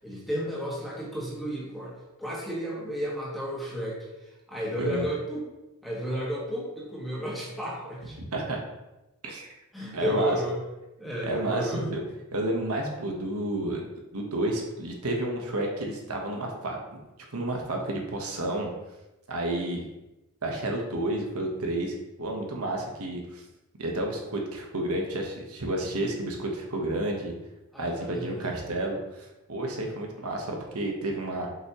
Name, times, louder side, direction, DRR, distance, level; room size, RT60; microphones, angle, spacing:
voice 1, 0.0-1.9 2.2-4.0 4.5-5.4 5.8-8.2 9.7-10.6 11.0-11.9 22.6-22.7 27.7-28.6, equal, ahead, -6 dB, 1.7 m, -32 dB
voice 2, 9.9-10.4 11.2-12.0 12.3-17.0 17.3-18.7 19.3-19.8 20.4-23.4 23.8-27.3 27.8-31.5, right 1 dB, 85° right, 1 dB, 1.3 m, -31 dB
7.4 x 5.7 x 3.1 m, 0.98 s
head